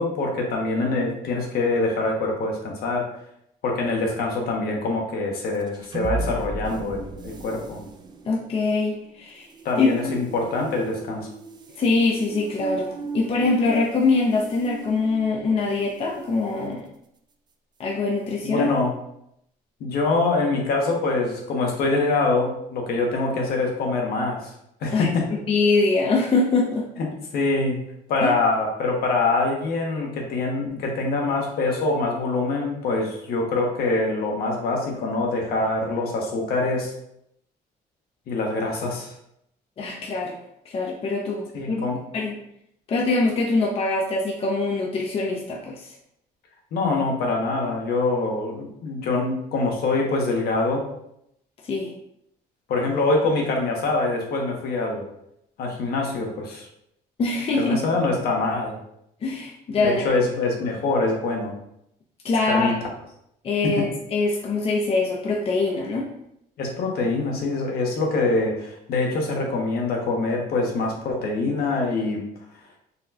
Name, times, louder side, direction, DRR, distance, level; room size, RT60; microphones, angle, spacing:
voice 1, 0.0-3.1 3.6-7.8 9.6-11.3 18.4-18.9 19.8-24.5 24.8-25.3 27.0-27.1 27.3-27.8 28.1-36.9 38.3-39.1 41.5-42.0 46.7-50.9 52.7-55.1 55.6-56.7 57.6-58.8 59.8-61.5 62.5-62.8 63.6-63.9 66.6-72.2, left 3 dB, 65° left, 0 dB, 0.9 m, -24 dB
sound 1, 5.5-16.1, right 3 dB, 25° right, 0.3 m, -36 dB
voice 2, 8.3-9.5 9.8-9.9 11.8-16.8 17.8-18.7 24.9-25.1 25.5-26.9 28.2-28.3 39.8-40.4 40.7-41.9 42.1-42.4 42.9-45.9 51.6-51.9 57.2-57.8 59.2-60.0 62.2-62.8 63.4-66.1, left 3 dB, 35° left, -1 dB, 0.5 m, -23 dB
4.0 x 2.2 x 2.7 m, 0.77 s
cardioid pair, 110°, 17 cm